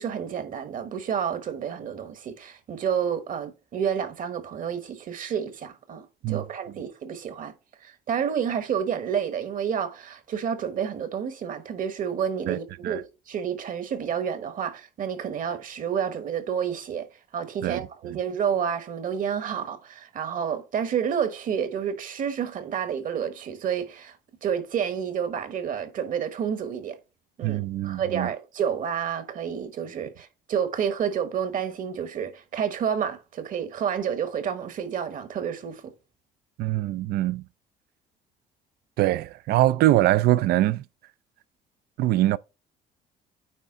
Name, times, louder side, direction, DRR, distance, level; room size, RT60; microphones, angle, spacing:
voice 1, 0.0-7.5 7.8-17.1 17.3-24.2 24.4-27.0 27.4-35.9, right 8 dB, 50° right, 1.2 m, -29 dB
voice 2, 27.4-28.3 36.6-37.4 39.0-40.8 42.0-42.4, right 15 dB, 70° right, 0.4 m, -23 dB
9.3 x 3.6 x 3.6 m
cardioid pair, 110°, 17 cm